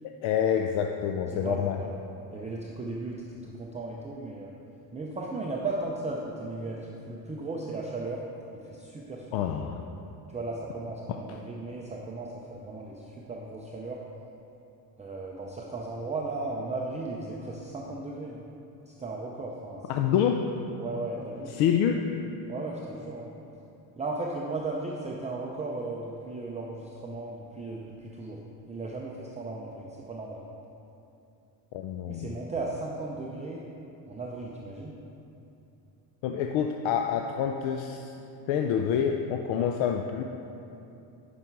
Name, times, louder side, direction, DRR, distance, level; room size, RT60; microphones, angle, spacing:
voice 1, 0.0-1.8 9.3-9.8 11.1-11.4 19.9-20.4 21.5-22.0 31.7-32.3 36.2-38.1 38.5-40.2, left 8 dB, 80° left, 4 dB, 0.6 m, -27 dB
voice 2, 1.3-1.9 2.3-4.5 4.9-8.2 8.7-9.3 10.3-14.0 15.0-18.4 18.9-20.1 20.8-21.6 22.5-23.3 24.0-28.4 28.7-30.4 32.1-33.7 34.1-35.0, right 2 dB, 15° right, -3 dB, 0.5 m, -36 dB
9.5 x 5.7 x 4.6 m, 2.8 s
cardioid pair, 135°, 47 cm